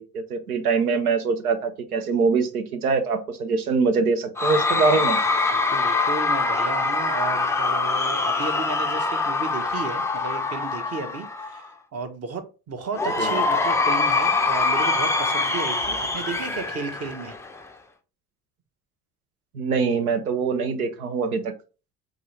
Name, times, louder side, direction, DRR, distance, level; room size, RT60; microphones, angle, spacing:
voice 1, 0.0-5.2 13.2-13.4 19.5-21.5, right 4 dB, 85° right, 9 dB, 0.6 m, -23 dB
Cheering / Crowd, 4.4-11.7 12.9-17.7, left 3 dB, 5° left, 0.4 m, -24 dB
voice 2, 5.5-11.7 11.9-17.3, right 4 dB, 35° right, 7 dB, 0.8 m, -33 dB
4.8 x 2.4 x 2.9 m, 0.33 s
figure-of-eight pair, 50°, 43 cm